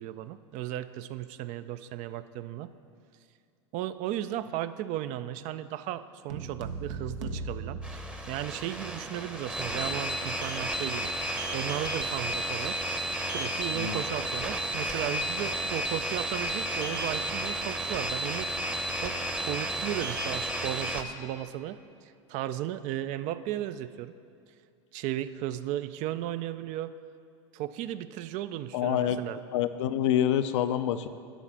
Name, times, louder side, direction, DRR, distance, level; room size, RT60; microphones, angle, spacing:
voice 1, 0.0-2.7 3.7-11.1 11.5-12.8 13.2-18.7 19.0-21.8 22.0-24.1 24.9-26.9 27.5-29.4, right 12 dB, 50° right, 13 dB, 0.4 m, -35 dB
sound 1, 6.3-8.8, right 3 dB, 80° right, 0.9 m, -38 dB
sound 2, 7.8-21.0, right 1 dB, 5° right, 0.8 m, -32 dB
voice 2, 28.7-29.2 29.5-31.1, left 10 dB, 75° left, 11 dB, 0.5 m, -27 dB
11.0 x 4.1 x 7.4 m, 2.3 s
hypercardioid pair, 95°, 16 cm